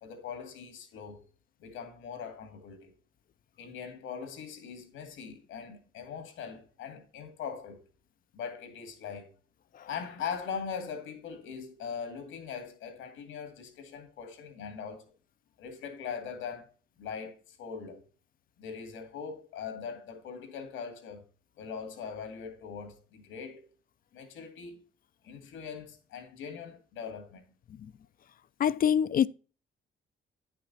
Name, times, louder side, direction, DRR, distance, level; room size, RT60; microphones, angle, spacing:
voice 1, 0.0-1.2 1.6-2.9 3.6-7.8 8.3-9.3 9.9-15.1 15.6-16.7 17.0-18.0 18.6-21.2 21.6-23.6 24.1-24.8 25.2-27.5, left 6 dB, 90° left, 2.1 m, -41 dB
voice 2, 28.6-29.3, left 9 dB, 45° left, 0.4 m, -24 dB
9.9 x 5.8 x 4.0 m
cardioid pair, 90°, 20 cm